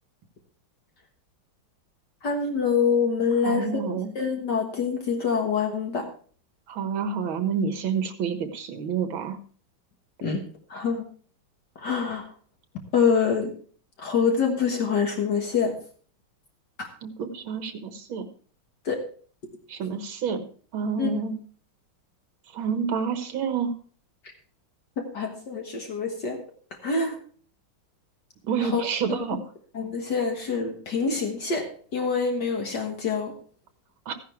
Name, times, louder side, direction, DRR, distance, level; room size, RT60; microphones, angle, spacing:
voice 1, 2.2-3.7 4.2-6.1 10.2-10.4 10.7-11.0 11.8-12.3 12.9-13.5 14.0-15.8 16.8-16.9 18.8-19.0 21.0-21.1 25.0-26.4 26.8-27.2 28.6-28.8 29.7-33.4, left 5 dB, 55° left, 3 dB, 1.9 m, -25 dB
voice 2, 3.5-4.1 6.7-9.4 17.0-18.3 19.7-20.5 20.7-21.4 22.5-23.7 28.4-29.4 34.1-34.2, right 6 dB, 75° right, 8 dB, 2.2 m, -28 dB
15.0 x 10.0 x 3.3 m, 0.43 s
omnidirectional pair, 2.3 m